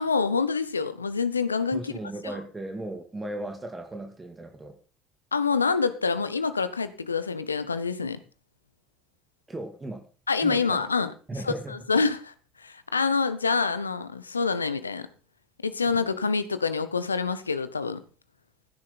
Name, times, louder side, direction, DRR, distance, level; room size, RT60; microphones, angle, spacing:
voice 1, 0.0-1.9 5.3-8.2 10.3-11.1 11.5-11.6 11.9-12.3 12.6-15.1 15.6-18.0, left 4 dB, 90° left, 13 dB, 0.9 m, -26 dB
voice 2, 1.7-4.8 9.5-10.1 10.4-10.8 11.3-11.8 15.9-16.1, right 1 dB, 20° right, 5 dB, 2.6 m, -36 dB
16.0 x 10.5 x 4.1 m, 0.37 s
figure-of-eight pair, 60°, 0 cm